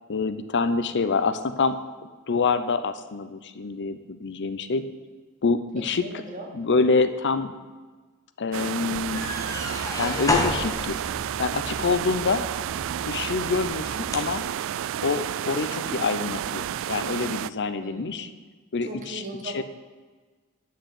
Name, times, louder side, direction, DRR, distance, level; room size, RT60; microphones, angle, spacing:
voice 1, 0.1-1.8 2.3-4.8 5.4-6.1 6.5-7.5 8.4-9.2 10.0-10.9 11.4-12.5 13.0-14.4 15.0-18.3 18.7-19.6, left 4 dB, 55° left, 11 dB, 0.7 m, -26 dB
voice 2, 5.8-6.5 17.8-18.2 18.8-19.6, right 1 dB, 35° right, 0 dB, 2.3 m, -38 dB
sound 1, 8.5-17.5, right 10 dB, 65° right, 0.3 m, -31 dB
sound 2, 8.9-14.4, left 2 dB, 15° left, 1.2 m, -32 dB
9.8 x 6.5 x 8.2 m, 1.3 s
head